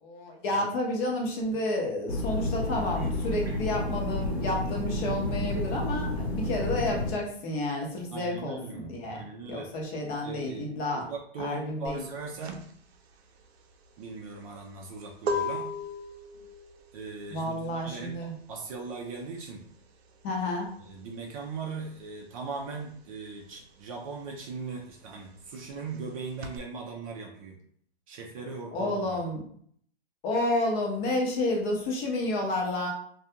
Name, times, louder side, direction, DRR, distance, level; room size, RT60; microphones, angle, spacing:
voice 1, 0.0-11.1 11.4-12.0 17.3-18.3 20.2-20.7 28.7-29.4 30.2-32.9, left 1 dB, 35° left, -1 dB, 0.8 m, -30 dB
sound 1, 2.1-7.1, left 1 dB, 85° left, 0.9 m, -30 dB
voice 2, 8.1-9.7 10.2-10.7 10.9-12.6 14.0-15.7 16.9-19.7 20.9-27.6 28.1-29.2, right 4 dB, 35° right, 0 dB, 0.4 m, -39 dB
sound 2, 11.9-22.1 22.4-26.6, left 2 dB, 80° right, 0.6 m, -38 dB
2.4 x 2.3 x 2.8 m, 0.63 s
hypercardioid pair, 130°, 31 cm